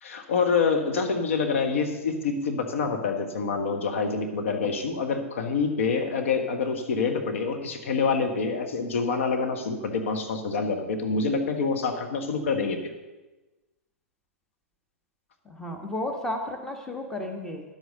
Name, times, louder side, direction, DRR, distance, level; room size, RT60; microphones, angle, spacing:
voice 1, 0.0-12.8, left 5 dB, 60° left, 4 dB, 1.5 m, -26 dB
voice 2, 15.4-17.6, left 1 dB, 5° left, 4 dB, 1.5 m, -33 dB
11.0 x 8.1 x 6.6 m, 1.1 s
figure-of-eight pair, 105°, 8 cm